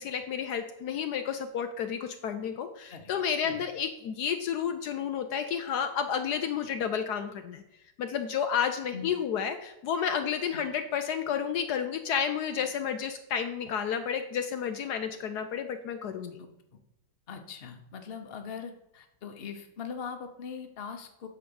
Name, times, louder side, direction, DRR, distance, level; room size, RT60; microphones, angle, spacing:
voice 1, 0.0-7.6 8.0-16.4, left 7 dB, 70° left, 7 dB, 1.2 m, -31 dB
voice 2, 16.4-16.8 17.3-21.3, left 6 dB, 40° left, 6 dB, 1.1 m, -41 dB
9.5 x 5.1 x 7.1 m, 0.83 s
omnidirectional pair, 1.9 m